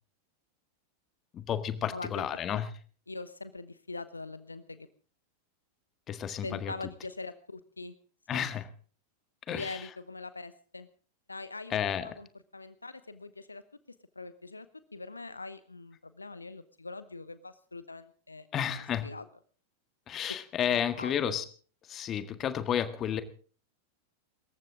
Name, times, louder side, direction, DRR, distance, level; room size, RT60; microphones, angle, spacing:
voice 1, 1.3-2.7 6.1-6.7 8.3-8.7 9.5-9.8 11.7-12.2 18.5-19.1 20.1-21.4 21.8-23.2, left 9 dB, 30° left, 11 dB, 1.7 m, -31 dB
voice 2, 1.9-2.3 3.1-4.9 6.4-7.9 8.3-8.5 9.5-10.9 11.3-12.3 12.5-13.6 14.1-14.7 14.9-18.7 19.0-19.2 20.7-21.3, left 3 dB, 80° left, 14 dB, 1.0 m, -42 dB
25.0 x 14.5 x 3.8 m, 0.42 s
figure-of-eight pair, 90°, 0 cm